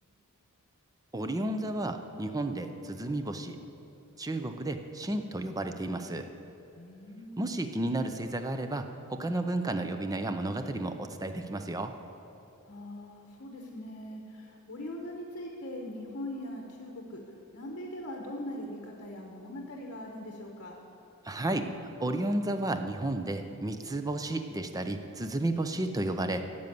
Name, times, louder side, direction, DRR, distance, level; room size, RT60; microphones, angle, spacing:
voice 1, 1.1-3.6 4.2-6.3 7.4-11.9 21.2-21.7 22.0-26.5, right 1 dB, 15° right, 7 dB, 0.6 m, -32 dB
voice 2, 6.7-7.6 12.6-17.2 17.5-20.8, left 1 dB, 55° left, 0 dB, 1.2 m, -41 dB
10.5 x 7.0 x 9.3 m, 2.8 s
head